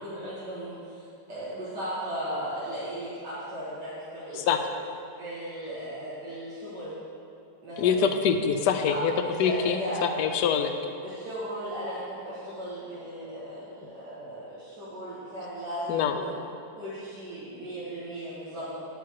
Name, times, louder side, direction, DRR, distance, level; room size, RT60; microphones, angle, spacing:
voice 1, 0.0-1.0 1.3-4.7 5.2-7.0 7.6-8.1 8.8-10.3 11.0-16.4 16.8-18.8, right 1 dB, 85° right, -12 dB, 2.6 m, -36 dB
voice 2, 7.8-9.1 9.4-10.7 15.9-16.2, left 7 dB, 80° left, 7 dB, 1.2 m, -24 dB
12.0 x 5.6 x 4.7 m, 2.5 s
omnidirectional pair, 1.8 m